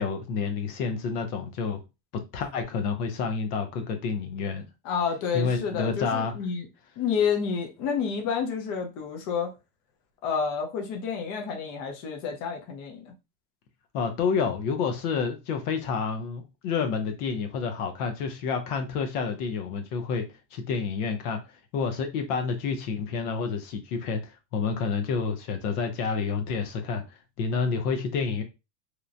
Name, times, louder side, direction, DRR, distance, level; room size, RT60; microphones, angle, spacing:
voice 1, 0.0-1.8 2.1-4.7 5.3-6.3 13.9-21.4 21.7-28.4, left 5 dB, 75° left, 0.7 m, -29 dB
voice 2, 4.8-6.7 7.0-9.5 10.2-13.1, left 6 dB, 40° left, 0.7 m, -29 dB
3.0 x 2.1 x 2.4 m
supercardioid pair, 145°, 47 cm